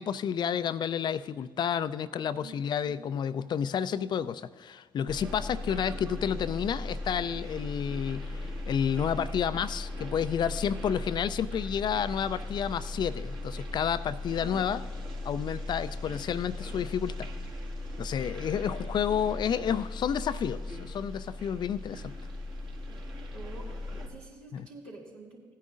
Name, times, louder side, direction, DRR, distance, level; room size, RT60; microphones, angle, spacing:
voice 1, 0.0-14.8 15.2-17.3 18.0-22.1 24.5-24.7, left 8 dB, 45° left, 15 dB, 0.4 m, -30 dB
sound 1, 5.1-24.1, left 2 dB, 50° right, 1.6 m, -38 dB
voice 2, 23.3-23.6 23.9-25.4, right 3 dB, 75° right, -4 dB, 2.1 m, -47 dB
17.0 x 9.6 x 2.5 m, 1.5 s
hypercardioid pair, 45°, 10 cm